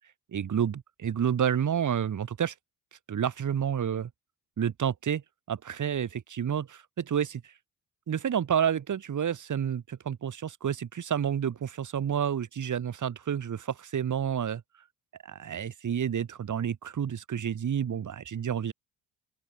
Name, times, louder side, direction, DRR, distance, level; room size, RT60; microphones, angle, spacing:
voice 1, 0.3-2.5 3.1-4.1 4.6-5.2 5.5-7.4 8.1-14.6 15.2-18.7, right 8 dB, 45° right, 1.8 m, -29 dB
open air
supercardioid pair, 65°, 42 cm